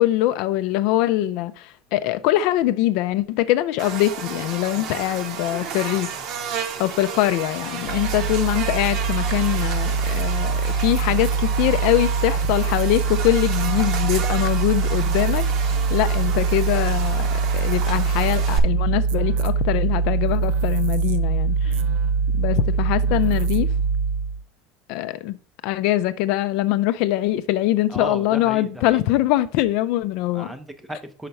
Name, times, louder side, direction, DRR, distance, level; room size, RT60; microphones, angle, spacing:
voice 1, 0.0-6.2 6.8-21.8 22.3-23.7 24.9-25.4 25.6-30.5, left 14 dB, 50° left, 0.4 m, -23 dB
Buzz, 3.8-18.6, right 7 dB, 40° right, 0.8 m, -32 dB
sound 1, 7.9-24.4, right 5 dB, 90° right, 0.5 m, -23 dB
voice 2, 21.6-22.2 27.9-29.0 30.3-31.3, equal, 5° right, 0.5 m, -36 dB
5.7 x 4.4 x 5.3 m
cardioid pair, 180°, 0 cm